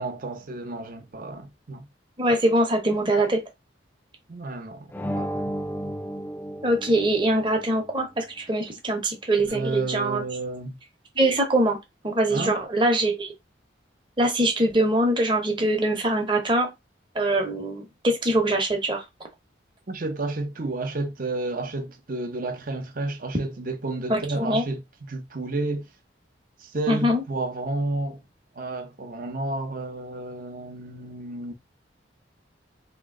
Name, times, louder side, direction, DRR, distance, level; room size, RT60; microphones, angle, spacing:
voice 1, 0.0-1.8 4.3-5.5 9.5-10.8 12.3-12.6 19.9-24.8 25.1-25.9 26.6-28.2 28.6-31.5, right 2 dB, 45° right, 0.7 m, -31 dB
voice 2, 2.2-3.4 6.6-10.2 11.2-11.8 12.0-13.3 14.2-16.7 17.1-19.0 24.1-24.6 26.9-27.2, right 1 dB, 25° right, 0.9 m, -23 dB
sound 1, 4.9-7.6, equal, 10° left, 0.4 m, -32 dB
3.0 x 3.0 x 3.7 m
head